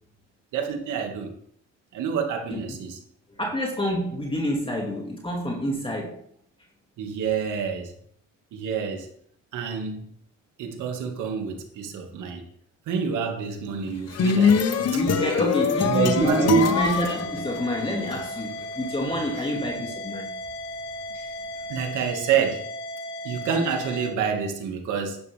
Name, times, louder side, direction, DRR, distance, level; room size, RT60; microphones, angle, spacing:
voice 1, 0.5-1.3 1.9-3.0 7.0-7.9 8.5-9.1 9.5-10.1 10.6-12.4 12.9-14.6 15.9-16.8 21.1-21.3 21.7-22.7 23.2-25.2, right 6 dB, 85° right, 3 dB, 2.3 m, -27 dB
voice 2, 3.4-6.2 14.9-20.3, equal, 15° left, -1 dB, 2.5 m, -28 dB
sound 1, 13.9-18.2, left 6 dB, 55° left, 1.2 m, -24 dB
sound 2, 16.0-24.1, left 1 dB, 85° left, 2.3 m, -36 dB
11.5 x 10.5 x 3.7 m, 0.65 s
cardioid pair, 90°, 30 cm